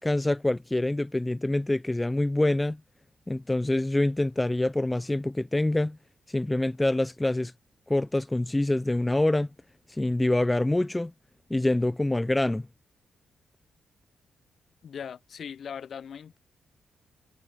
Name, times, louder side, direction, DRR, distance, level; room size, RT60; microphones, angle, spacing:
voice 1, 0.0-2.8 3.3-6.0 6.3-7.5 7.9-9.5 9.9-11.1 11.5-12.6, left 1 dB, 10° left, 2.1 m, -25 dB
voice 2, 14.8-16.4, left 7 dB, 55° left, 2.1 m, -39 dB
cardioid pair, 125°, 0 cm